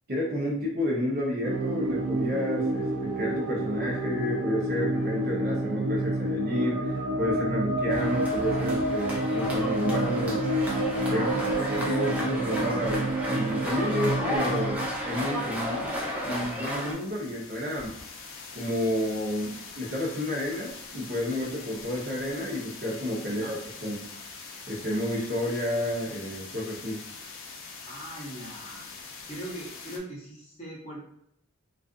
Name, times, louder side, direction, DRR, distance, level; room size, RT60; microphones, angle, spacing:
voice 1, 0.1-10.4 11.1-15.9 16.2-18.0 18.5-24.1 24.7-27.0, left 1 dB, 45° right, -4 dB, 0.7 m, -31 dB
sound 1, 1.4-14.9, right 1 dB, 85° right, 0.4 m, -29 dB
sound 2, 7.9-16.9, equal, 5° right, 0.4 m, -33 dB
sound 3, 15.1-30.0, left 4 dB, 60° left, 0.5 m, -44 dB
voice 2, 23.2-23.6 27.8-28.9 29.3-31.0, right 1 dB, 30° left, -5 dB, 0.7 m, -40 dB
2.4 x 2.4 x 2.4 m, 0.74 s
head